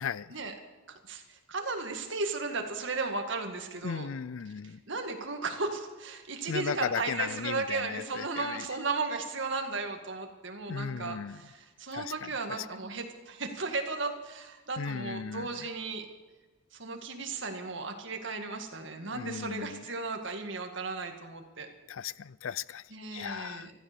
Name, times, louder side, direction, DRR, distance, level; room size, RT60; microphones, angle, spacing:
voice 1, 0.0-0.3 3.8-4.8 6.5-8.7 10.7-11.4 11.9-12.3 12.6-12.7 14.8-15.5 19.0-19.8 21.9-22.8 23.1-23.7, left 7 dB, 70° left, 0.4 m, -36 dB
voice 2, 0.9-4.1 4.6-16.1 16.7-21.7 22.9-23.7, right 3 dB, 60° right, 1.9 m, -35 dB
14.5 x 13.0 x 6.9 m
head